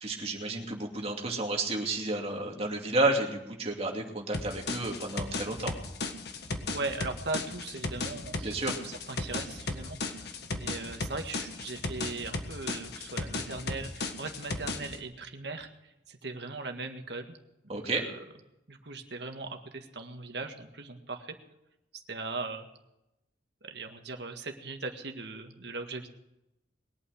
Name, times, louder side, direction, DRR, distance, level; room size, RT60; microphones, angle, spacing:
voice 1, 0.0-5.7 8.4-8.8 17.7-18.0, right 2 dB, 35° right, 1 dB, 2.6 m, -31 dB
sound 1, 4.3-15.0, left 3 dB, 60° left, 1.6 m, -35 dB
voice 2, 6.7-17.4 17.6-18.2 18.7-21.4 21.9-22.7 23.6-26.1, right 3 dB, 65° right, 5 dB, 1.8 m, -39 dB
21.5 x 8.8 x 6.5 m, 0.90 s
head